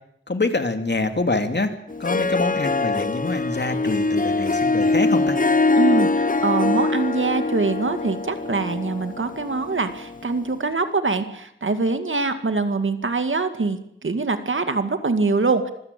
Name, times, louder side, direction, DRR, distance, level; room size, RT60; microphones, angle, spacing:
voice 1, 0.3-1.7 2.0-5.4, left 3 dB, 60° left, 7 dB, 2.7 m, -25 dB
Harp, 1.9-10.5, left 3 dB, 45° left, 0.8 m, -23 dB
voice 2, 5.8-15.7, right 3 dB, 80° right, 8 dB, 2.2 m, -24 dB
25.0 x 16.0 x 8.4 m, 0.76 s
cardioid pair, 40°, 20 cm